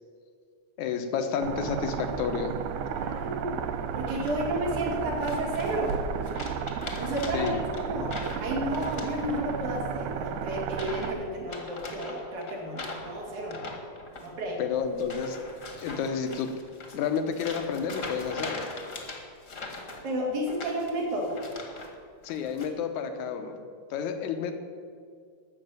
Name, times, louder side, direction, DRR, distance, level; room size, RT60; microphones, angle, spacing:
voice 1, 0.8-2.6 7.3-7.7 14.6-15.4 15.8-16.5 16.9-18.6 22.2-23.6 23.9-24.5, left 6 dB, 75° left, 7 dB, 2.3 m, -30 dB
sound 1, 1.4-11.1, right 8 dB, 90° right, 2.2 m, -33 dB
voice 2, 2.8-3.6 3.9-5.9 7.0-8.1 8.4-13.6 14.2-14.6 20.0-21.4, right 1 dB, 75° right, -2 dB, 3.9 m, -32 dB
sound 2, 4.0-4.6 5.2-5.9 6.2-9.7 9.9-10.3 10.7-11.1 11.4-21.9 22.2-22.7, left 3 dB, 35° left, 1.4 m, -41 dB
13.5 x 6.7 x 9.2 m, 2.1 s
omnidirectional pair, 3.5 m